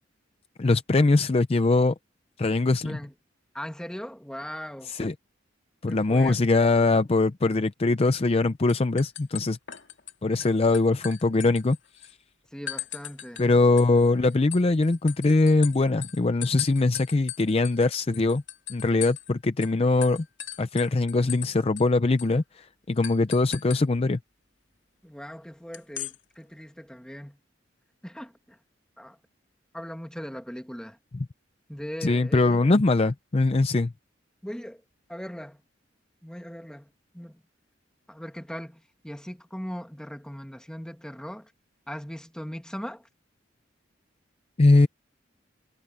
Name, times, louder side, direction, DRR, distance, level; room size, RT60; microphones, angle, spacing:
voice 1, 0.6-1.9 2.4-3.0 4.8-5.1 5.8-9.6 10.2-11.8 13.4-18.4 18.7-20.3 20.6-24.2 32.0-33.9 44.6-44.9, left 3 dB, 30° left, 0.5 m, -22 dB
voice 2, 3.5-4.9 5.9-6.4 12.5-13.4 25.0-27.4 28.0-28.6 29.0-29.2 29.7-31.0 31.7-32.6 34.4-34.8 35.1-35.6 36.2-37.4 38.1-41.5 41.9-43.1, equal, 5° left, 1.8 m, -39 dB
sound 1, 8.1-8.4 8.7-10.1 10.4-12.1 12.7-13.5 13.8-19.3 19.6-19.7 20.0-21.5 21.8-21.9 22.2-22.4 23.0-23.8 25.7-26.2, left 12 dB, 70° left, 2.5 m, -38 dB
head